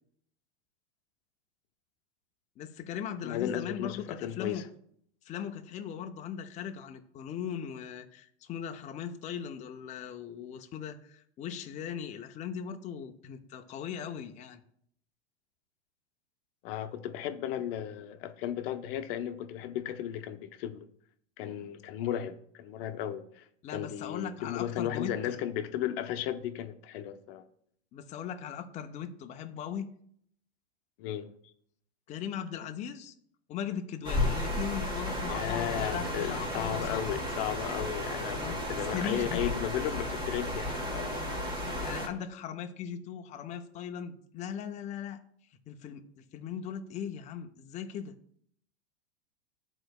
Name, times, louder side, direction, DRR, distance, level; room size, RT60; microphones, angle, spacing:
voice 1, 2.6-4.6 5.3-14.6 23.6-25.4 27.9-29.9 32.1-33.1 33.5-37.0 38.3-38.6 38.9-39.5 41.6-45.2 45.7-48.1, left 8 dB, 20° left, 0.4 m, -39 dB
voice 2, 3.2-4.7 16.6-20.9 21.4-27.4 31.0-31.3 35.3-41.2, left 11 dB, 55° left, 0.7 m, -35 dB
sound 1, 34.0-42.1, left 1 dB, 15° right, 1.4 m, -33 dB
11.5 x 3.9 x 2.3 m
hypercardioid pair, 115°, 34 cm